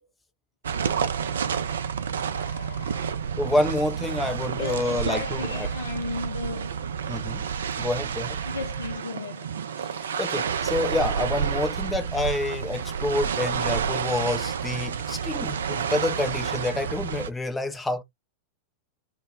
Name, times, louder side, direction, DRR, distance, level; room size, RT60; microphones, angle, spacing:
sound 1, 0.6-17.3, right 7 dB, 65° right, 0.3 m, -29 dB
voice 1, 2.2-3.2 4.6-6.9 8.4-9.6, left 4 dB, 75° left, 0.4 m, -35 dB
voice 2, 3.4-5.7 7.1-7.5 7.8-8.4 10.2-18.0, left 2 dB, 10° left, 0.4 m, -28 dB
2.0 x 2.0 x 3.1 m
figure-of-eight pair, 90°, 0 cm